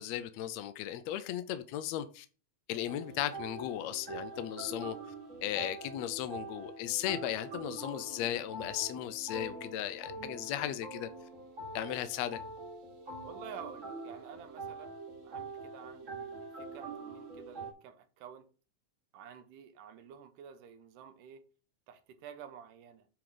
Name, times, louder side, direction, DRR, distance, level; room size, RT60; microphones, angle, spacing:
voice 1, 0.0-2.3 2.7-5.0 5.4-11.1 11.7-12.4, left 12 dB, 80° left, 1.6 m, -36 dB
sound 1, 2.9-17.7, right 3 dB, 30° right, 1.9 m, -44 dB
voice 2, 13.2-15.0 15.2-18.5 19.1-21.5 21.9-23.1, right 8 dB, 85° right, 2.4 m, -50 dB
9.3 x 3.8 x 4.9 m
omnidirectional pair, 3.6 m